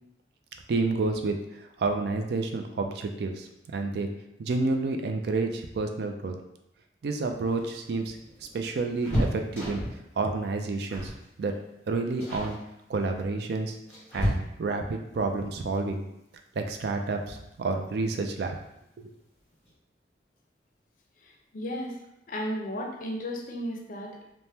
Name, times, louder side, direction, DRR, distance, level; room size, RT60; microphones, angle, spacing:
voice 1, 0.7-1.4 1.8-4.1 4.4-6.3 7.0-8.2 8.5-9.8 10.2-11.1 11.4-11.5 11.9-12.6 12.9-13.8 14.1-16.0 16.6-18.6 19.0-19.1, right 3 dB, 65° right, 4 dB, 0.3 m, -29 dB
sound 1, 7.4-10.1 10.9-11.2 11.5-11.8 12.2-12.6 13.4-14.9 16.6-16.7 17.1-17.2 18.4-18.8 19.1-19.2 19.5-19.7, equal, 10° left, 1.1 m, -32 dB
voice 2, 21.2-22.0 22.3-24.2, equal, 50° left, 1 dB, 0.5 m, -34 dB
3.3 x 2.1 x 2.7 m, 0.83 s
head